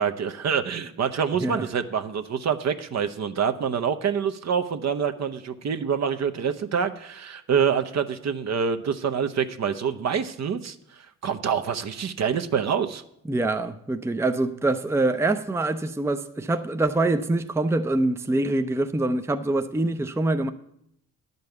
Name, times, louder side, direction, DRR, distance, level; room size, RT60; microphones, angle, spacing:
voice 1, 0.0-10.8 11.2-13.0, right 7 dB, 50° right, 0.8 m, -26 dB
voice 2, 13.2-20.5, right 2 dB, 10° right, 0.6 m, -25 dB
10.5 x 5.5 x 7.9 m
supercardioid pair, 70°, 35 cm